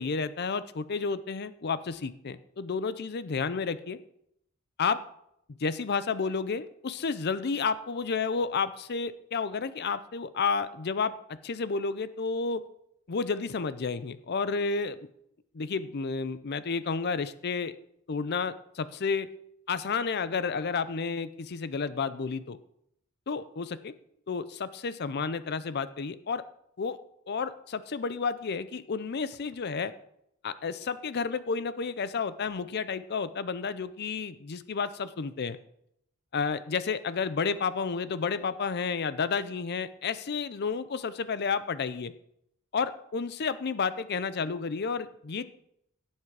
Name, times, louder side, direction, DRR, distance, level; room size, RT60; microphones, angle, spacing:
voice 1, 0.0-4.0 4.8-5.0 5.6-12.6 13.1-15.0 15.5-17.7 18.1-19.3 19.7-22.6 23.3-23.9 24.3-26.4 26.8-27.0 27.3-29.9 30.4-35.6 36.3-42.1 42.7-45.4, left 5 dB, 50° left, 14 dB, 0.5 m, -31 dB
17.0 x 7.3 x 4.8 m, 0.75 s
head